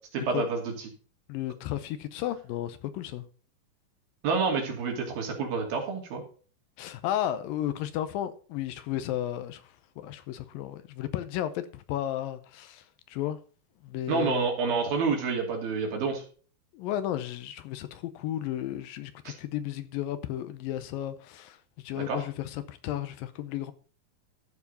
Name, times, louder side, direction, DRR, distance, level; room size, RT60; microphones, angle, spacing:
voice 1, 0.1-0.7 4.2-6.2 14.1-16.2 19.3-19.4 22.0-22.2, right 4 dB, 75° right, 4.3 m, -28 dB
voice 2, 1.3-3.3 6.8-13.4 13.8-14.5 16.7-23.7, left 12 dB, 80° left, 2.4 m, -33 dB
14.0 x 4.9 x 5.3 m
omnidirectional pair, 4.2 m